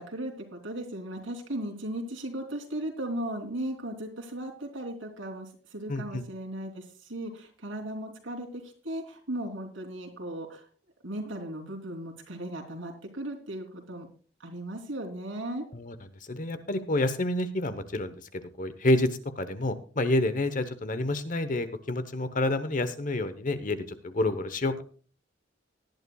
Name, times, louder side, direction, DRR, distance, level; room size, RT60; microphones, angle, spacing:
voice 1, 0.0-10.7 11.0-14.1 14.4-15.6, right 1 dB, 85° right, 1 dB, 3.4 m, -36 dB
voice 2, 5.9-6.2 15.7-15.9 16.2-19.1 19.4-24.8, left 1 dB, 40° left, 11 dB, 1.0 m, -28 dB
18.5 x 11.0 x 2.3 m, 0.41 s
head